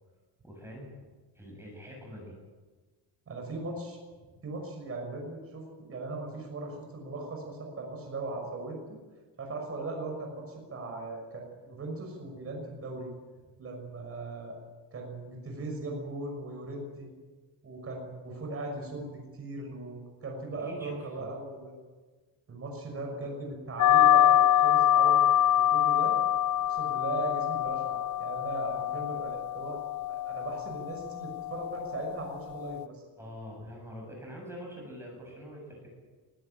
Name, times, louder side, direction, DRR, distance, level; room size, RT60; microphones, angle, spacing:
voice 1, 0.4-0.9 1.3-2.4 20.6-21.3 22.9-23.3 28.9-29.0 33.2-35.9, equal, 5° right, -2 dB, 7.4 m, -44 dB
voice 2, 3.3-4.0 4.4-8.8 9.4-13.1 13.6-14.5 14.9-17.1 17.6-21.8 22.5-25.3 25.6-26.2 26.6-29.8 30.1-33.0, right 2 dB, 30° right, 1 dB, 6.0 m, -38 dB
sound 1, 23.8-32.9, left 11 dB, 45° left, 0.6 m, -25 dB
24.0 x 14.5 x 9.1 m, 1.3 s
cardioid pair, 170°, 42 cm